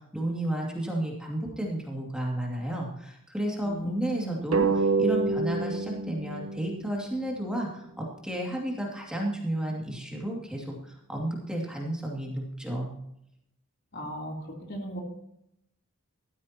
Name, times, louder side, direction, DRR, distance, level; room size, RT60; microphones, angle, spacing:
voice 1, 0.0-12.9, right 1 dB, 5° right, -2 dB, 2.4 m, -32 dB
voice 2, 3.6-4.4 13.9-14.4 14.7-15.0, right 1 dB, 50° left, 0 dB, 3.5 m, -36 dB
sound 1, 4.5-7.7, right 4 dB, 80° right, 1.3 m, -28 dB
15.0 x 13.5 x 2.9 m, 0.77 s
head